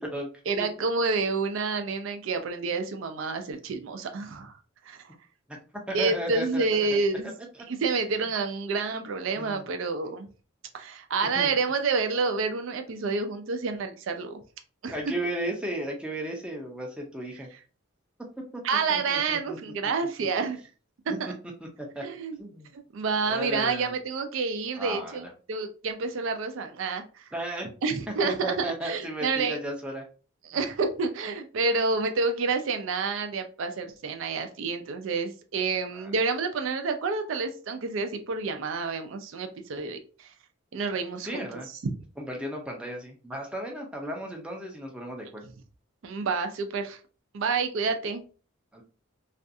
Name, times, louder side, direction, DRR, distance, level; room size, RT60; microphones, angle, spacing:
voice 1, 0.5-4.5 4.9-5.0 5.9-7.3 7.7-10.3 10.7-14.4 14.8-15.2 18.6-20.6 21.2-21.3 22.0-22.4 22.7-27.2 27.8-29.6 30.4-40.0 40.7-41.9 46.0-47.0 47.3-48.2, right 4 dB, 70° right, 7 dB, 0.4 m, -29 dB
voice 2, 5.9-6.6 6.9-7.0 9.4-9.6 11.4-11.6 14.9-17.5 18.4-18.6 18.9-19.6 21.1-21.2 21.8-22.0 22.4-22.7 23.3-23.9 24.8-25.3 27.3-27.7 28.2-30.1 35.9-36.1 41.2-41.7 42.2-45.5 48.7-48.8, right 1 dB, 5° right, 0 dB, 0.4 m, -34 dB
2.4 x 2.3 x 2.6 m, 0.36 s
head